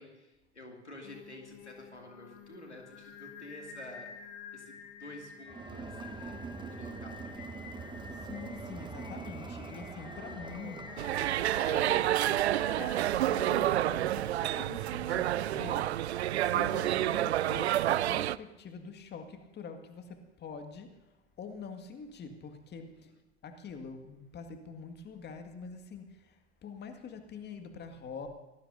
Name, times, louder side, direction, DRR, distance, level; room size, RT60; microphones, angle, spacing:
voice 1, 0.0-4.1 4.5-7.4, left 1 dB, 90° left, 1 dB, 2.5 m, -50 dB
Singing, 1.0-13.6, left 6 dB, 55° left, 2.1 m, -49 dB
Crowd, 5.4-11.8, right 4 dB, 15° right, 1.1 m, -44 dB
voice 2, 8.0-21.0 21.4-23.1 23.4-28.3, left 5 dB, 30° left, 7 dB, 1.9 m, -45 dB
sound 1, 11.0-18.4, right 13 dB, 75° right, 0.5 m, -29 dB
25.5 x 18.5 x 2.7 m, 1.1 s
figure-of-eight pair, 75°, 33 cm